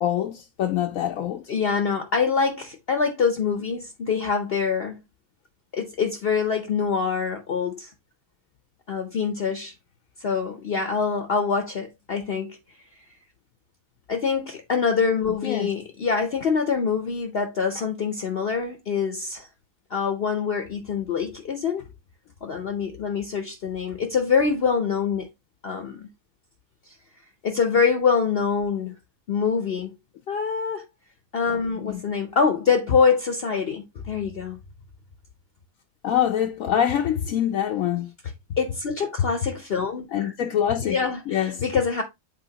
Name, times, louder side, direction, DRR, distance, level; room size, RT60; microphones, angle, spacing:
voice 1, 0.0-1.5 15.4-15.7 31.8-32.0 36.0-38.1 40.1-41.0 41.3-41.6, left 10 dB, 75° left, 1.1 m, -25 dB
voice 2, 1.5-5.0 5.7-7.9 8.9-9.7 10.2-12.6 14.1-19.5 19.9-21.9 22.4-25.3 25.6-26.1 27.4-29.0 29.3-29.9 30.3-30.8 31.3-34.6 38.6-40.3 40.8-42.0, left 5 dB, 50° left, 0.9 m, -25 dB
7.8 x 4.4 x 2.8 m
omnidirectional pair, 1.5 m